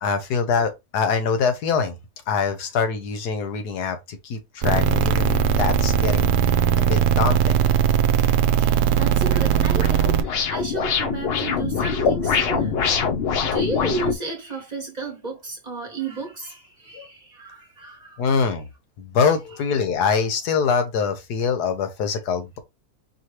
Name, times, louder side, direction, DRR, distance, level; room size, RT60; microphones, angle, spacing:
voice 1, 0.0-1.9 2.3-6.4 6.8-7.6 16.9-17.1 18.2-18.7 19.0-22.6, left 6 dB, 85° left, 1.4 m, -24 dB
sound 1, 4.6-10.2, right 8 dB, 65° right, 0.9 m, -19 dB
voice 2, 8.6-13.0 13.4-18.5, right 3 dB, 30° right, 1.3 m, -33 dB
sound 2, 9.2-14.1, left 6 dB, 55° left, 0.7 m, -24 dB
4.8 x 2.9 x 3.1 m
omnidirectional pair, 1.6 m